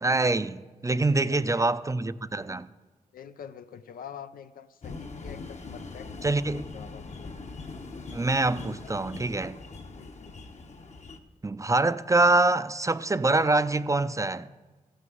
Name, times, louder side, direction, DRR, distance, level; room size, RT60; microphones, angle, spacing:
voice 1, 0.0-2.7 6.2-6.7 8.1-9.6 11.4-14.5, right 2 dB, 20° right, 0.5 m, -25 dB
voice 2, 0.9-1.7 3.1-7.4 10.0-10.3, left 8 dB, 85° left, 0.6 m, -46 dB
sound 1, 4.8-11.2, left 3 dB, 50° left, 1.1 m, -42 dB
14.5 x 6.3 x 7.8 m
cardioid pair, 55°, 14 cm